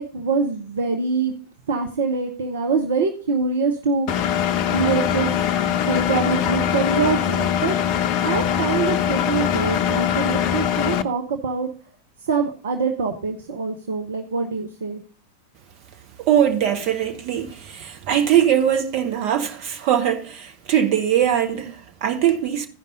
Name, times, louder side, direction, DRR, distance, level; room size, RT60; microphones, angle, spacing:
voice 1, 0.0-1.4 1.7-4.1 4.7-5.3 5.8-7.8 8.2-11.7 12.3-15.0, right 4 dB, 65° right, 0.8 m, -24 dB
Engine, 4.1-11.0, left 9 dB, 40° left, 0.6 m, -22 dB
voice 2, 16.3-22.7, right 10 dB, 45° right, 1.2 m, -21 dB
15.0 x 5.3 x 3.7 m
figure-of-eight pair, 90°, 0 cm